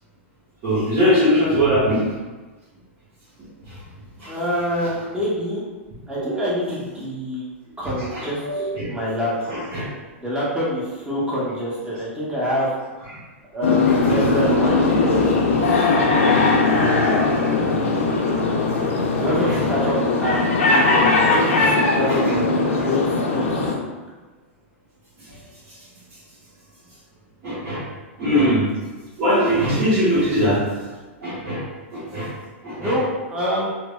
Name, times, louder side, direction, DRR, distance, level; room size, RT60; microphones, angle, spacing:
voice 1, 0.6-2.0 3.7-3.8 4.2-4.3 4.8-4.9 8.0-8.8 9.5-9.9 13.8-14.5 19.3-19.6 21.4-21.7 22.1-22.3 22.8-22.9 27.4-27.9 28.2-28.7 29.2-30.6 31.2-32.3 32.6-33.0, equal, 45° right, -12 dB, 1.1 m, -22 dB
voice 2, 4.3-5.6 6.1-7.4 7.8-9.5 10.2-12.7 13.0-13.2 13.5-15.2 15.5-15.8 16.6-17.1 19.2-20.0 20.2-23.7 32.8-33.7, equal, 10° right, -7 dB, 0.8 m, -26 dB
sound 1, 13.6-23.7, left 3 dB, 80° left, 0.5 m, -19 dB
3.2 x 2.0 x 2.3 m, 1.2 s
hypercardioid pair, 115°, 7 cm